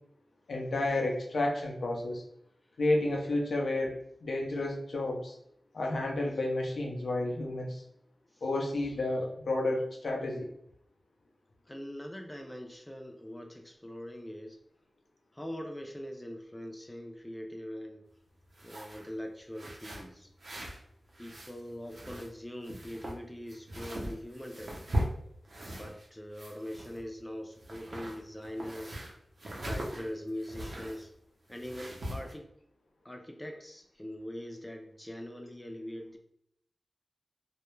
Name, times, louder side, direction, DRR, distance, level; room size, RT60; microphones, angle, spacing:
voice 1, 0.5-2.2 2.8-5.3 5.7-7.8 8.4-10.5, left 2 dB, 90° left, 0 dB, 0.5 m, -31 dB
voice 2, 11.7-14.6 15.3-18.0 18.6-20.3 21.2-25.0 25.7-29.0 29.6-31.1 31.5-32.5 33.0-36.2, equal, 15° left, 4 dB, 0.3 m, -42 dB
sound 1, 18.5-19.1 19.5-20.8 21.1-22.4 22.6-26.1 26.3-27.2 27.5-31.0 31.5-32.3, equal, 60° right, 0.6 m, -39 dB
2.2 x 2.0 x 3.0 m, 0.72 s
wide cardioid pair, 70°, 0 cm